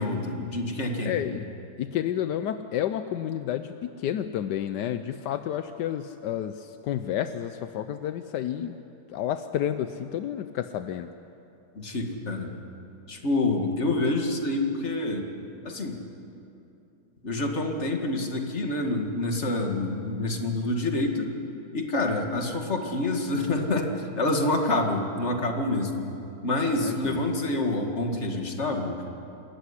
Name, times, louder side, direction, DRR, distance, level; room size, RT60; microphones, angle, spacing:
voice 1, 0.0-1.2 11.8-12.5 13.1-15.3 15.6-16.0 17.2-21.3 21.7-26.1 26.4-29.0, left 2 dB, 40° left, 3 dB, 2.3 m, -27 dB
voice 2, 1.0-1.5 1.8-8.8 9.1-11.1 26.8-27.2, left 10 dB, 80° left, 10 dB, 1.3 m, -30 dB
26.5 x 14.5 x 9.8 m, 2.8 s
omnidirectional pair, 1.8 m